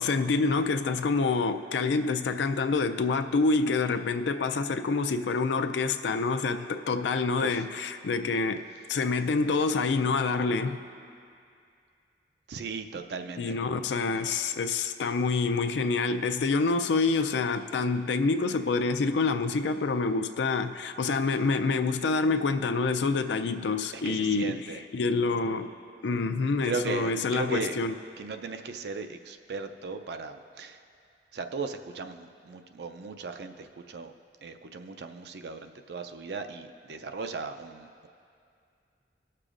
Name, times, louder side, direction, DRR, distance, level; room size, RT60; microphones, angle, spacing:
voice 1, 0.0-10.8 13.4-24.7 24.9-25.7 26.0-27.9, left 4 dB, 85° left, 8 dB, 0.4 m, -27 dB
voice 2, 12.5-13.6 23.9-24.8 26.6-27.8 28.2-30.8 31.3-34.1 34.4-38.1, right 4 dB, 70° right, 7 dB, 0.4 m, -37 dB
19.0 x 6.6 x 2.5 m, 2.4 s
head